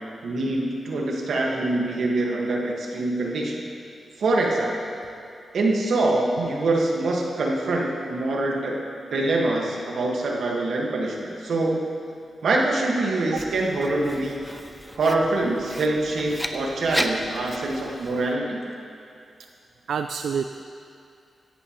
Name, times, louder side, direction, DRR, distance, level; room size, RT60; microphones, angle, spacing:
voice 1, 0.2-3.6 4.2-4.7 5.5-8.8 9.1-11.8 12.4-14.4 15.0-18.6, right 2 dB, 65° right, -1 dB, 1.6 m, -24 dB
Writing, 13.3-18.3, equal, ahead, 0.5 m, -34 dB
voice 2, 19.9-20.6, right 7 dB, 85° right, 8 dB, 0.3 m, -28 dB
17.0 x 12.5 x 3.1 m, 2.5 s
wide cardioid pair, 170°, 0 cm